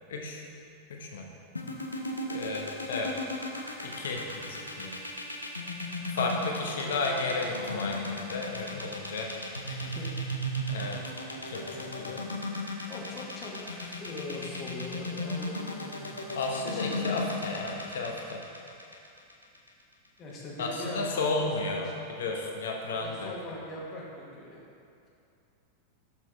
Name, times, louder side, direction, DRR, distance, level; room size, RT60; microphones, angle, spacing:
voice 1, 0.1-0.4 0.9-1.3 2.3-3.2 3.8-5.0 6.1-9.4 9.7-9.9 10.7-11.0 11.5-12.3 16.3-18.4 20.6-23.6, left 3 dB, 60° left, 0 dB, 1.0 m, -33 dB
sound 1, 1.6-19.7, left 1 dB, 80° left, 0.7 m, -35 dB
voice 2, 9.6-10.4 11.0-11.2 11.7-12.0 12.9-16.1 16.6-17.2 17.4-17.5 20.2-21.5 21.8-21.9 23.0-24.6, left 1 dB, 30° left, -4 dB, 1.5 m, -41 dB
6.0 x 5.9 x 4.5 m, 2.6 s
figure-of-eight pair, 90°, 0 cm